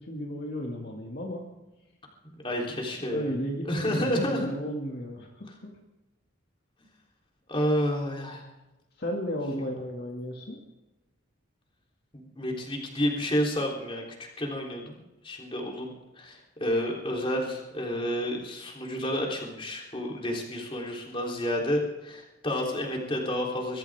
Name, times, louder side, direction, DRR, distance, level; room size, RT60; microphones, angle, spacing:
voice 1, 0.0-1.5 3.0-5.7 9.0-10.6, equal, 50° left, -1 dB, 2.3 m, -34 dB
voice 2, 2.2-3.3 3.6-4.5 7.5-8.4 9.6-9.7 12.1-14.0 14.4-23.8, equal, 25° left, -1 dB, 3.6 m, -30 dB
22.5 x 15.0 x 3.7 m, 1.0 s
head